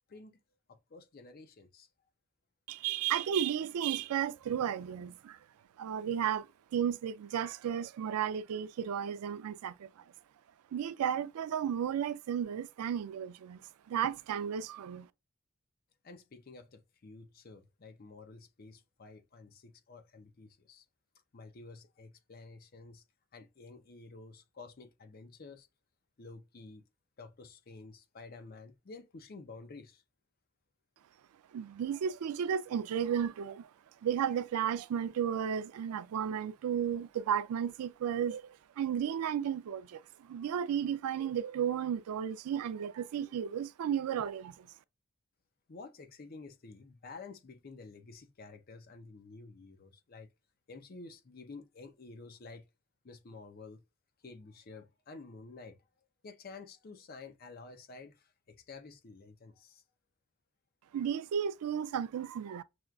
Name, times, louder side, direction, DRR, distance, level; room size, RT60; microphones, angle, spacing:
voice 1, 0.1-0.4 0.7-1.9 16.0-20.9 21.3-23.0 23.3-25.7 26.2-26.8 27.2-30.0 45.7-50.3 50.7-52.7 53.0-53.8 54.2-55.8 56.2-59.8, left 3 dB, 40° left, 0.5 m, -51 dB
voice 2, 2.7-5.4 5.8-6.5 6.7-10.0 10.7-15.1 31.5-33.7 34.0-44.7 60.9-62.6, right 8 dB, 90° right, 0.3 m, -34 dB
5.9 x 2.3 x 2.3 m
head